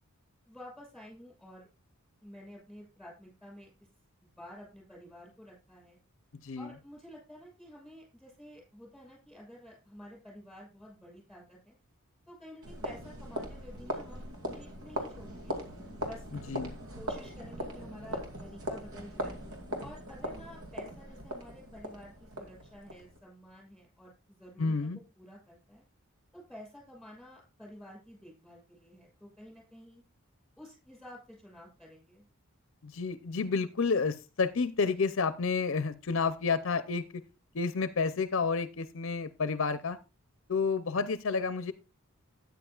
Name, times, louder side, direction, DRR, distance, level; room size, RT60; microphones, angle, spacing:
voice 1, 0.5-1.7 2.2-3.7 4.3-6.0 6.6-11.7 12.3-15.6 16.0-16.3 17.0-19.4 19.8-25.8 26.3-30.0 30.6-32.2, equal, ahead, 0 dB, 6.4 m, -51 dB
sound 1, 12.6-23.2, equal, 80° right, 2.5 m, -40 dB
voice 2, 24.6-25.0 32.8-37.2 37.5-40.0 40.5-41.7, left 4 dB, 60° left, 12 dB, 0.6 m, -30 dB
13.0 x 9.5 x 2.4 m, 0.29 s
head